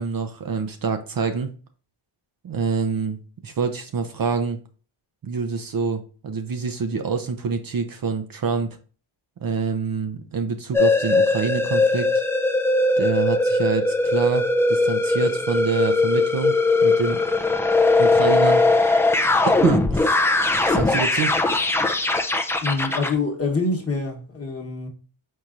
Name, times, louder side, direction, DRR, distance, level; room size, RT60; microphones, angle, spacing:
voice 1, 0.0-1.5 2.4-4.6 5.2-8.8 9.4-12.1 13.0-17.2 18.0-19.1 19.5-20.2 20.6-21.3, right 5 dB, 45° right, 0.6 m, -26 dB
sound 1, 10.7-23.1, left 2 dB, 5° left, 0.4 m, -20 dB
voice 2, 22.6-24.9, left 3 dB, 30° left, 1.1 m, -25 dB
4.6 x 4.2 x 2.5 m
cardioid pair, 80°, 48 cm